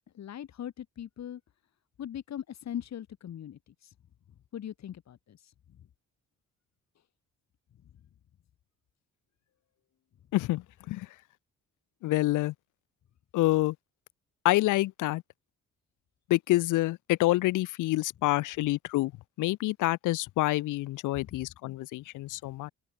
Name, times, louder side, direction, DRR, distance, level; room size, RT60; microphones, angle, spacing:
voice 1, 0.1-1.4 2.0-3.9 4.5-5.5 21.2-21.4, left 10 dB, 60° left, 2.9 m, -40 dB
voice 2, 10.3-11.1 12.0-12.5 13.3-13.7 14.4-15.2 16.3-19.1 19.4-22.7, left 18 dB, 90° left, 0.9 m, -27 dB
open air
cardioid pair, 90°, 30 cm